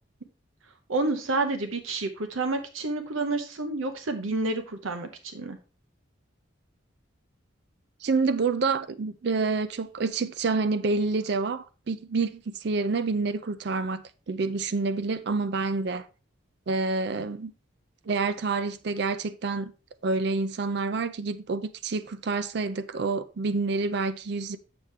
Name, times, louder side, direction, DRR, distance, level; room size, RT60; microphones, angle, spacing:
voice 1, 0.9-5.6, right 2 dB, 85° right, 0.9 m, -29 dB
voice 2, 8.0-16.1 16.7-17.5 18.1-19.7 20.0-24.6, right 4 dB, 55° right, 0.4 m, -28 dB
7.4 x 7.0 x 3.3 m
head